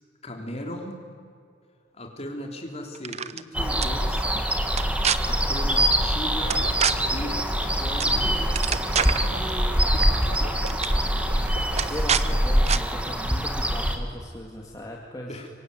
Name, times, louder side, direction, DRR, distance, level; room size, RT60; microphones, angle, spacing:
voice 1, 0.2-1.0 1.9-4.5 5.2-6.7 7.0-7.4 7.7-9.0 11.4-11.8 12.3-12.4 15.1-15.5, left 1 dB, 35° left, 3 dB, 3.5 m, -38 dB
sound 1, 2.9-3.4 3.8-3.9 4.7-5.2 6.5-6.9 8.0-8.2 8.4-9.3 10.2-10.4 10.6-10.9 11.7-12.2 12.7-12.8, right 8 dB, 35° right, 0.7 m, -25 dB
sound 2, 3.5-14.0, equal, 5° right, 1.9 m, -24 dB
sound 3, 6.4-11.9, right 2 dB, 65° right, 2.4 m, -40 dB
voice 2, 11.9-15.5, equal, 20° left, -1 dB, 2.3 m, -38 dB
25.0 x 23.5 x 9.6 m, 2.2 s
head